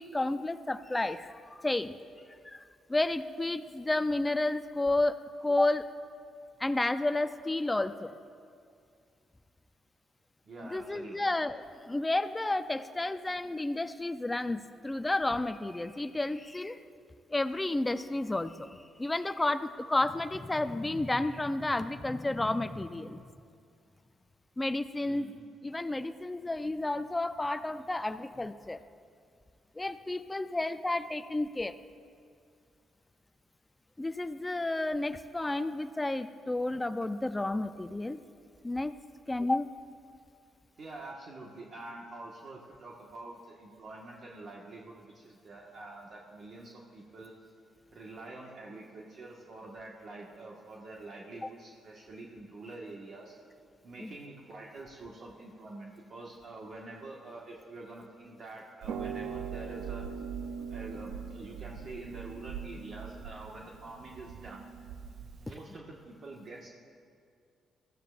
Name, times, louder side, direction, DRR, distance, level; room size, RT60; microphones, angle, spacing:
voice 1, 0.0-1.9 2.3-2.6 2.9-5.9 6.6-8.1 10.7-16.8 17.3-18.7 19.0-23.2 24.6-25.3 25.6-28.8 29.8-31.8 34.0-38.2 38.6-38.9 39.3-39.7 54.0-54.2, left 2 dB, 15° left, 11 dB, 0.5 m, -31 dB
voice 2, 10.4-11.2 25.0-25.4 40.8-47.3 47.9-53.3 53.8-60.0 60.7-64.7 65.4-66.7, right 2 dB, 50° right, -3 dB, 1.5 m, -46 dB
Harp, 58.8-65.5, right 7 dB, 80° right, 0.6 m, -41 dB
20.5 x 14.5 x 2.5 m, 2.3 s
cardioid pair, 90°, 0 cm